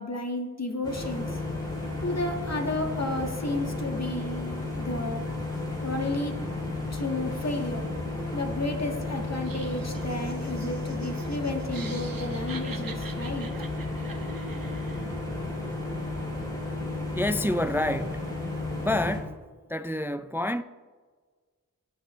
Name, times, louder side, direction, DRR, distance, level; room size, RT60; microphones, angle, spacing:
voice 1, 0.0-1.4 2.0-5.2 5.8-6.4 6.9-7.8 8.3-13.5, left 2 dB, 50° left, 1.6 m, -32 dB
sound 1, 0.8-19.2, left 2 dB, 10° left, 3.2 m, -33 dB
Laughter, 9.3-15.1, right 5 dB, 90° right, 0.8 m, -45 dB
voice 2, 17.1-18.3 18.8-19.4 19.7-20.6, left 1 dB, 5° right, 0.3 m, -28 dB
16.5 x 6.8 x 3.1 m
wide cardioid pair, 40°, 34 cm